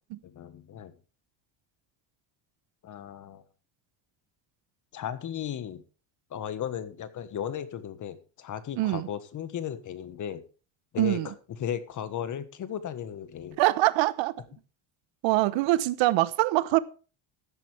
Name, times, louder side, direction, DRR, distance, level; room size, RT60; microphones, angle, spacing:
voice 1, 0.2-0.9 2.8-3.4 4.9-5.8 6.3-10.4 10.9-13.6, left 9 dB, 40° left, 1.4 m, -36 dB
voice 2, 8.8-9.1 11.0-11.3 13.6-14.3 15.2-16.8, right 18 dB, 70° right, 1.1 m, -24 dB
14.5 x 11.0 x 3.4 m
cardioid pair, 155°, 47 cm